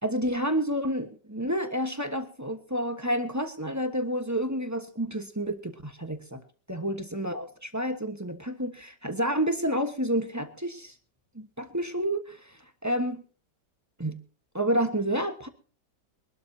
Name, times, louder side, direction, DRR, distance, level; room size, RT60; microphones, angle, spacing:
voice 1, 0.0-6.4 6.7-10.9 11.3-13.2 14.0-14.2 14.5-15.5, equal, 10° right, 7 dB, 1.1 m, -29 dB
24.0 x 12.5 x 2.8 m, 0.38 s
omnidirectional pair, 1.9 m